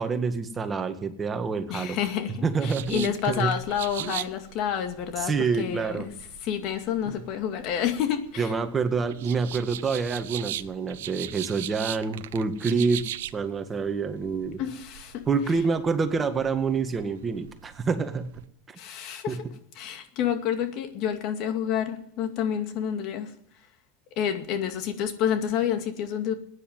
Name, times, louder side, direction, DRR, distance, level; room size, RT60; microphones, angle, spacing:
voice 1, 0.0-2.0 2.4-3.5 4.0-4.1 5.2-6.1 7.1-7.2 8.4-14.6 15.3-18.3 18.7-18.8 19.3-19.4, right 5 dB, 25° right, 1.8 m, -27 dB
voice 2, 1.7-6.1 6.4-8.5 14.6-15.2 18.8-19.4 19.8-23.3 24.2-26.3, left 9 dB, 55° left, 2.2 m, -29 dB
sound 1, 2.7-18.5, right 13 dB, 85° right, 0.6 m, -40 dB
15.0 x 9.9 x 9.3 m
supercardioid pair, 105°, 0 cm